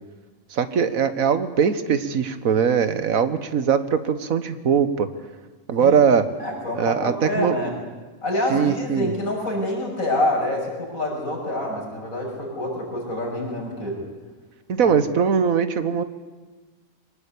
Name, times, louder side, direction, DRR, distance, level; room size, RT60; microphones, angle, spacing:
voice 1, 0.5-5.1 5.7-6.3 6.7-7.6 8.5-9.1 14.7-16.0, right 7 dB, 80° right, 11 dB, 1.7 m, -21 dB
voice 2, 6.4-7.7 8.2-14.0 14.8-14.9, left 1 dB, 80° left, -2 dB, 7.0 m, -26 dB
23.5 x 19.0 x 8.5 m, 1.3 s
omnidirectional pair, 1.4 m